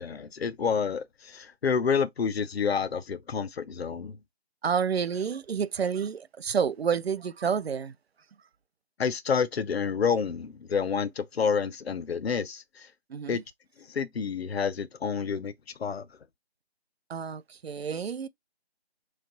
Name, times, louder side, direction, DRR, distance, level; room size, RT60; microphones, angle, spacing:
voice 1, 0.0-4.2 9.0-12.9 13.3-13.4 13.8-15.5 15.8-16.1, left 6 dB, 70° left, 0.6 m, -29 dB
voice 2, 4.6-7.9 13.1-13.4 17.1-18.3, right 7 dB, 70° right, 0.5 m, -29 dB
3.3 x 3.2 x 3.9 m
figure-of-eight pair, 160°, 32 cm